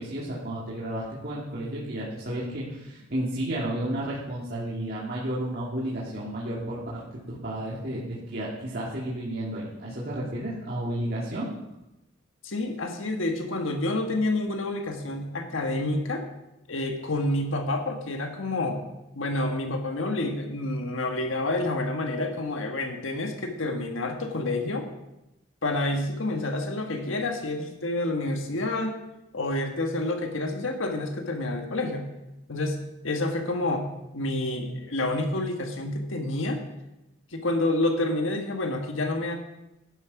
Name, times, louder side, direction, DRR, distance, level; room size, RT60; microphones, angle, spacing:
voice 1, 0.0-11.5, right 1 dB, 50° right, -7 dB, 2.3 m, -32 dB
voice 2, 12.4-16.2 16.7-18.9 19.1-24.9 25.6-29.0 29.3-32.0 32.5-36.6 37.3-39.4, left 2 dB, 80° left, 4 dB, 1.5 m, -28 dB
11.0 x 11.0 x 4.8 m, 0.91 s
head